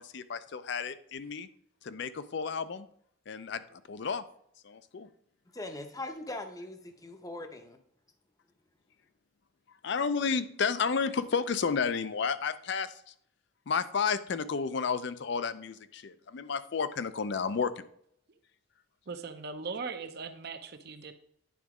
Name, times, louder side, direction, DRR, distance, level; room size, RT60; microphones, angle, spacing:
voice 1, 0.0-1.5 1.8-2.9 3.3-4.2 4.6-5.1 9.8-12.9 13.7-17.8, left 5 dB, 55° left, 14 dB, 0.4 m, -32 dB
voice 2, 5.5-7.8, left 2 dB, 15° left, 6 dB, 0.6 m, -40 dB
voice 3, 19.1-21.1, right 4 dB, 50° right, 8 dB, 0.6 m, -39 dB
9.4 x 4.0 x 4.8 m, 0.68 s
head